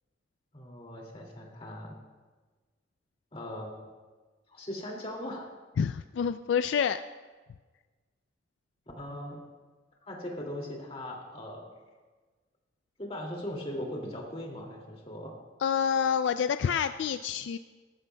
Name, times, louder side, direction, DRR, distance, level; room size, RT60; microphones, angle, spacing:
voice 1, 0.5-2.0 3.3-3.7 4.5-5.5 9.0-9.4 10.1-11.6 13.0-15.3, left 1 dB, 30° left, -1 dB, 2.3 m, -39 dB
voice 2, 5.8-7.0 15.6-17.6, left 7 dB, 75° left, 11 dB, 0.3 m, -27 dB
18.0 x 14.0 x 2.2 m, 1.3 s
head